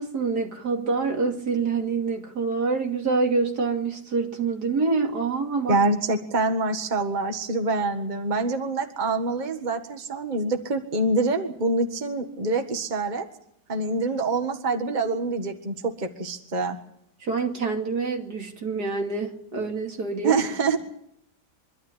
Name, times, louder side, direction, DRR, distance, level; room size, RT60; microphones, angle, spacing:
voice 1, 0.0-5.8 17.2-20.3, right 4 dB, 70° right, 3 dB, 3.2 m, -26 dB
voice 2, 5.7-13.3 13.7-16.8 20.2-20.8, right 3 dB, 30° right, 5 dB, 1.7 m, -25 dB
24.5 x 13.0 x 9.9 m, 0.73 s
omnidirectional pair, 1.8 m